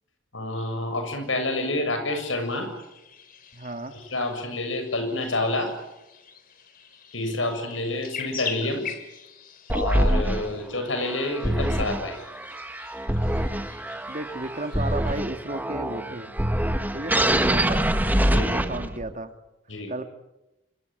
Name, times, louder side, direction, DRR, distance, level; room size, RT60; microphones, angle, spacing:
voice 1, 0.3-2.7 4.1-5.7 7.1-9.0 9.7-12.2 18.3-18.7 19.7-19.9, left 2 dB, 80° left, 7 dB, 7.2 m, -28 dB
sound 1, 2.5-15.2, left 7 dB, 45° left, 3.0 m, -43 dB
voice 2, 3.5-4.0 14.1-16.3 16.9-17.9 18.4-19.3 19.9-20.1, right 2 dB, 40° right, 8 dB, 1.9 m, -33 dB
sound 2, 9.7-19.1, right 1 dB, 10° right, 1.5 m, -25 dB
26.5 x 24.5 x 9.1 m, 0.95 s
head